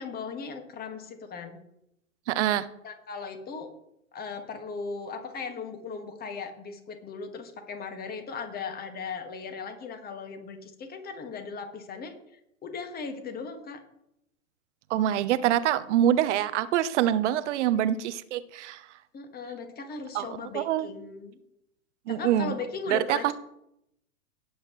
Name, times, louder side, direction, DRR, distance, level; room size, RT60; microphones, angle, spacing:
voice 1, 0.0-1.6 2.8-3.7 4.1-12.1 12.6-13.8 17.7-17.8 19.1-21.4 22.1-23.3, left 5 dB, 20° left, 6 dB, 1.9 m, -38 dB
voice 2, 2.3-2.7 14.9-18.8 20.1-20.3 20.5-20.9 22.1-22.6 22.9-23.3, right 11 dB, 60° right, 13 dB, 0.9 m, -25 dB
18.0 x 8.1 x 3.2 m, 0.79 s
hypercardioid pair, 120°, 40 cm